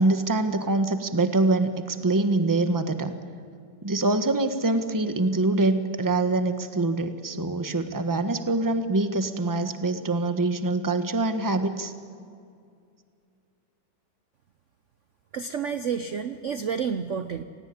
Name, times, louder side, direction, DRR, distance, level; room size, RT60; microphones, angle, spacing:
voice 1, 0.0-3.1 3.8-11.9, right 2 dB, 15° right, 9 dB, 1.1 m, -24 dB
voice 2, 15.3-17.4, right 6 dB, 55° right, 10 dB, 0.9 m, -30 dB
27.0 x 18.5 x 9.6 m, 2.4 s
omnidirectional pair, 2.0 m